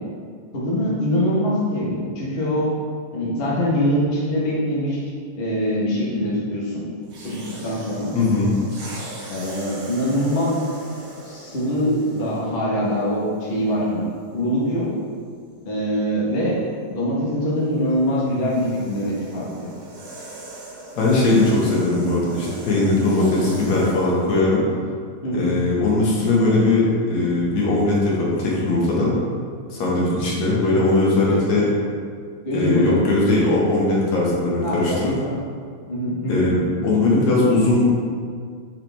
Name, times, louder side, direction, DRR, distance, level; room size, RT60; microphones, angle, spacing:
voice 1, 0.5-2.7 3.1-5.0 5.4-6.8 7.2-7.4 7.6-8.1 9.3-10.7 11.2-14.1 14.3-14.9 15.6-16.6 16.9-19.7 25.2-25.5 30.2-30.3 31.2-31.6 32.4-33.0 34.6-35.1 35.9-36.5, equal, 85° left, -6 dB, 0.5 m, -23 dB
sound 1, 7.0-12.6 13.4-13.6 17.5-24.2, right 2 dB, 80° right, 3.1 m, -40 dB
voice 2, 8.1-8.5 21.0-24.6 25.3-29.1 29.7-31.7 32.5-35.1 36.3-37.9, left 2 dB, 60° left, -5 dB, 2.5 m, -19 dB
9.4 x 4.8 x 3.5 m, 2.1 s
omnidirectional pair, 3.8 m